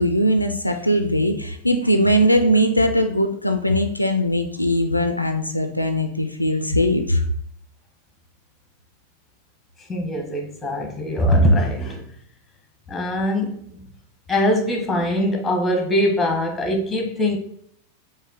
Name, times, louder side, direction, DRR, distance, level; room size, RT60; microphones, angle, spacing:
voice 1, 0.0-7.2, equal, 85° left, 6 dB, 0.4 m, -20 dB
voice 2, 9.9-12.0 12.9-13.8 14.3-17.4, equal, 10° left, 2 dB, 1.0 m, -21 dB
4.7 x 2.6 x 3.7 m, 0.67 s
figure-of-eight pair, 90°, 0 cm